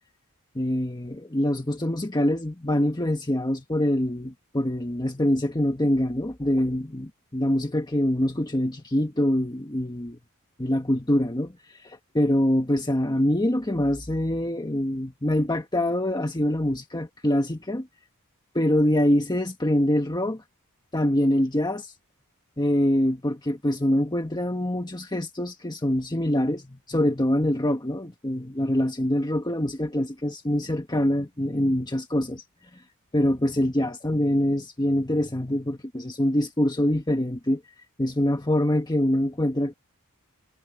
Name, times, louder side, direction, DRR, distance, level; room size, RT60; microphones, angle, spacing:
voice 1, 0.5-10.2 10.6-17.9 18.5-20.4 20.9-21.9 22.6-32.4 32.7-32.8 33.1-37.6 38.0-39.7, left 1 dB, 20° left, 1.5 m, -24 dB
head